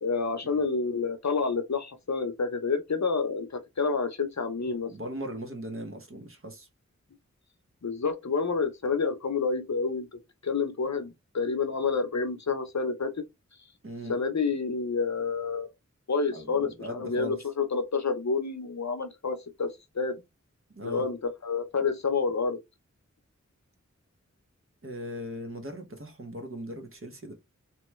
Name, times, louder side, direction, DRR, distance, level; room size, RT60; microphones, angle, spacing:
voice 1, 0.0-4.9 7.8-10.1 10.4-13.1 14.1-15.7 16.1-19.7 19.9-20.2 20.8-21.2 21.4-22.6, left 4 dB, 60° left, 0.7 m, -29 dB
voice 2, 4.6-6.7 13.8-14.2 16.3-17.4 20.7-21.1 24.8-27.3, equal, 45° right, 0.9 m, -39 dB
3.0 x 2.2 x 3.0 m
wide cardioid pair, 40°, 31 cm